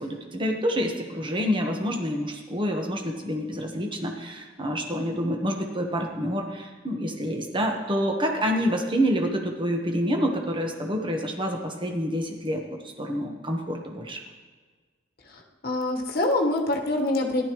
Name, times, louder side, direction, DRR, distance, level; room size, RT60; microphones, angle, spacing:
voice 1, 0.0-14.2, equal, 25° right, 2 dB, 1.1 m, -27 dB
voice 2, 15.3-17.4, left 2 dB, 55° left, 1 dB, 1.3 m, -25 dB
14.0 x 11.5 x 3.1 m, 1.4 s
head